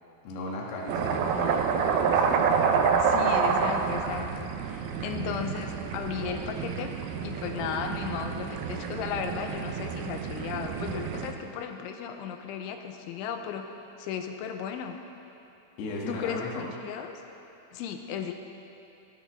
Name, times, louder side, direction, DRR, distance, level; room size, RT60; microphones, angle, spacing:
voice 1, 0.3-2.4 15.8-16.7, left 2 dB, 70° left, -3 dB, 3.4 m, -36 dB
sound 1, 0.9-11.3, right 6 dB, 85° right, 2.2 m, -28 dB
voice 2, 3.0-13.7 14.0-15.0 16.1-17.2 17.7-18.3, left 8 dB, 90° left, 5 dB, 3.2 m, -35 dB
17.5 x 13.5 x 3.5 m, 2.8 s
omnidirectional pair, 5.4 m